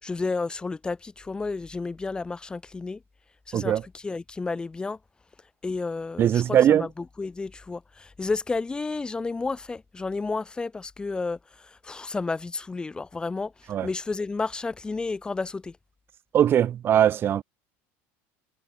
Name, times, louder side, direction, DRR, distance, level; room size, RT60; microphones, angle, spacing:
voice 1, 0.0-3.0 3.5-5.0 5.6-15.8, left 3 dB, 15° left, 2.4 m, -31 dB
voice 2, 6.2-6.9 13.7-13.9 16.3-17.4, right 10 dB, 35° right, 3.3 m, -20 dB
cardioid pair, 140°, 7 cm